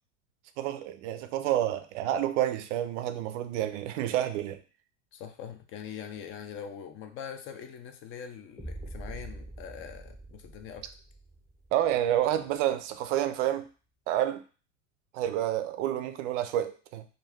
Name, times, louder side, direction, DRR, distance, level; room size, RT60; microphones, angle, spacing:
voice 1, 0.6-4.6 11.7-13.6 14.1-14.4 15.1-17.0, right 12 dB, 70° right, 10 dB, 0.5 m, -29 dB
voice 2, 5.1-10.9, left 8 dB, 35° left, 6 dB, 0.4 m, -43 dB
sound 1, 8.6-12.6, right 1 dB, 5° left, 0.7 m, -44 dB
2.3 x 2.3 x 3.4 m, 0.37 s
hypercardioid pair, 105°, 38 cm